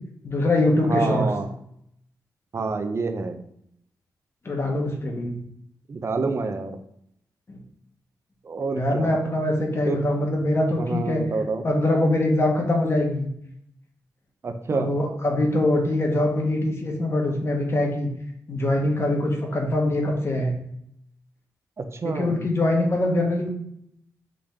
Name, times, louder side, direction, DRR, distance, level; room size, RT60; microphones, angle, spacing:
voice 1, 0.2-1.3 4.4-5.4 7.5-7.6 8.7-11.2 11.6-13.3 14.7-18.1 18.5-20.5 22.0-23.5, left 1 dB, 35° left, 1 dB, 1.2 m, -23 dB
voice 2, 0.8-1.5 2.5-3.4 5.9-6.8 8.4-9.1 9.9-10.0 10.8-11.6 14.4-14.9 21.8-22.4, right 4 dB, 40° right, 7 dB, 0.5 m, -27 dB
5.1 x 2.9 x 3.6 m, 0.73 s
cardioid pair, 100°, 7 cm